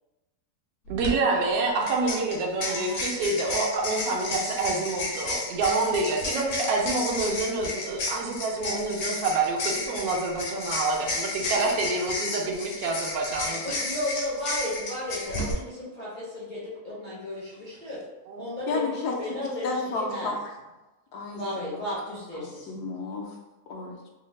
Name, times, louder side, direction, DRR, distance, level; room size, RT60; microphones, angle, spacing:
sound 1, 0.9-1.1 1.9-15.5, left 2 dB, 65° left, 1.0 m, -32 dB
voice 1, 0.9-13.6 18.3-18.5, right 3 dB, 70° right, 1 dB, 1.0 m, -27 dB
voice 2, 2.6-3.2 12.4-12.5 13.5-18.0 18.3-20.3 21.4-22.7, left 1 dB, 45° left, -8 dB, 0.6 m, -34 dB
voice 3, 18.7-19.4 19.6-20.4 21.1-21.8 22.3-23.4 23.7-24.1, left 3 dB, 85° left, 0 dB, 1.1 m, -32 dB
3.2 x 2.0 x 3.1 m, 1.1 s
omnidirectional pair, 1.7 m